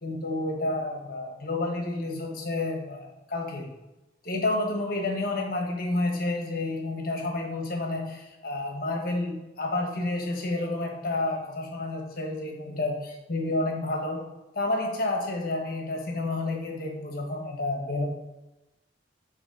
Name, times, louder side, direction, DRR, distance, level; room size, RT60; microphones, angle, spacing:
voice 1, 0.0-3.7 4.2-14.3 14.5-18.1, left 2 dB, 50° left, 2 dB, 1.2 m, -30 dB
8.0 x 4.0 x 5.2 m, 0.98 s
head